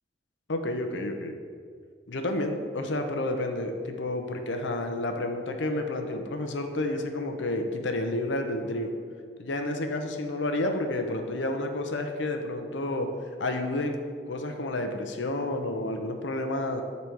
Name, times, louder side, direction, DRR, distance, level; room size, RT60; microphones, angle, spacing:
voice 1, 0.5-1.4 2.1-8.9 9.4-13.1 13.4-14.0 14.3-16.8, left 1 dB, 80° left, 5 dB, 0.7 m, -30 dB
8.5 x 4.1 x 4.5 m, 2.1 s
head